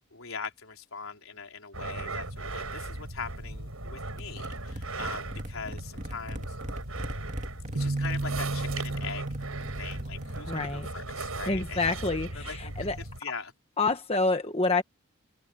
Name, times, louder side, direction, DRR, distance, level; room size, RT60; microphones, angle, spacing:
voice 1, 0.1-6.8 7.7-9.2 9.8-11.9 12.1-13.5, left 5 dB, 80° left, 4.3 m, -41 dB
sound 1, 1.7-13.2, right 2 dB, 85° right, 6.4 m, -38 dB
sound 2, 4.1-10.6, equal, 35° right, 2.5 m, -41 dB
sound 3, 7.8-11.4, right 2 dB, 55° right, 1.0 m, -34 dB
voice 2, 10.5-10.9 11.5-13.0 13.8-14.8, left 3 dB, 30° left, 1.2 m, -27 dB
open air
head